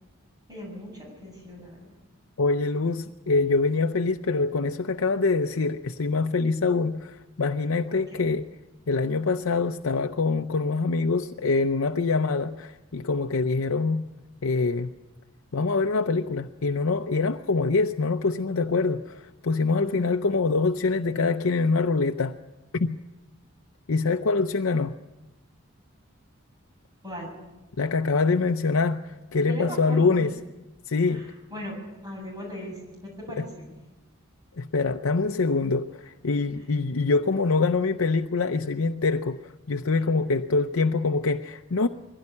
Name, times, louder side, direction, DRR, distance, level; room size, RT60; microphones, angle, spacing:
voice 1, 0.5-1.9 7.9-8.3 19.8-20.1 27.0-27.3 29.5-30.4 31.1-31.8 32.0-33.7, equal, 20° right, 7.5 m, -38 dB
voice 2, 2.4-8.5 8.9-14.1 14.4-14.9 15.5-22.4 22.7-23.0 23.9-25.0 27.8-30.4 30.9-31.3 33.3-33.5 34.6-41.9, left 3 dB, 85° left, 0.7 m, -25 dB
22.0 x 16.5 x 9.7 m
head